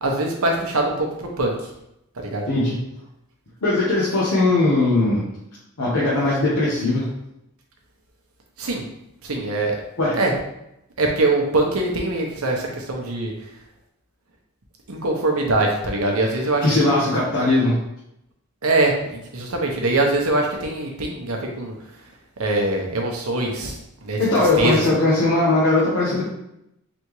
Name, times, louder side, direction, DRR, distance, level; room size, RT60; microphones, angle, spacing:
voice 1, 0.0-1.7 2.2-2.5 8.6-8.8 9.2-9.8 10.1-10.3 11.0-13.3 14.9-17.0 18.6-21.7 22.4-25.0, right 2 dB, 75° right, 1 dB, 0.9 m, -23 dB
voice 2, 2.5-2.8 3.6-5.2 5.8-7.1 10.0-10.1 16.6-17.8 24.2-26.2, left 2 dB, 75° left, -8 dB, 1.0 m, -19 dB
4.1 x 3.5 x 3.1 m, 0.83 s
head